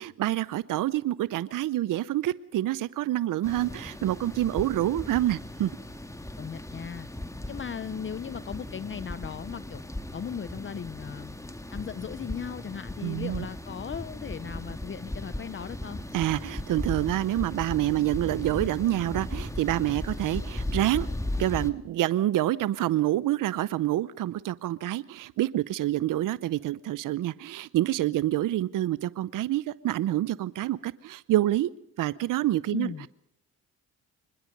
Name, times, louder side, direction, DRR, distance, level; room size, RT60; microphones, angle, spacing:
voice 1, 0.0-5.7 13.0-13.5 16.1-21.1 21.4-31.7 32.0-33.1, right 14 dB, 60° right, 18 dB, 0.7 m, -27 dB
sound 1, 3.4-21.7, left 1 dB, 10° left, 2.0 m, -37 dB
voice 2, 6.4-7.1 7.5-9.8 10.1-11.3 11.7-16.0 32.7-33.1, left 7 dB, 35° left, 16 dB, 0.7 m, -37 dB
25.0 x 21.0 x 5.3 m, 0.78 s
supercardioid pair, 70°, 35 cm